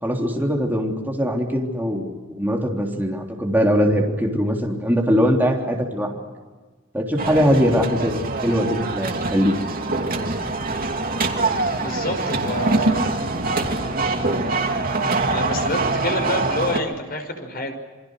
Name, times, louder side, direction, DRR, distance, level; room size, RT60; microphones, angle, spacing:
voice 1, 0.0-6.2 6.9-9.5, equal, 10° right, 0 dB, 3.5 m, -21 dB
sound 1, 7.2-16.8, right 3 dB, 45° right, 2.8 m, -24 dB
voice 2, 11.8-13.2 13.6-13.7 15.3-17.7, left 1 dB, 45° left, 5 dB, 5.7 m, -27 dB
28.5 x 24.0 x 6.6 m, 1.4 s
head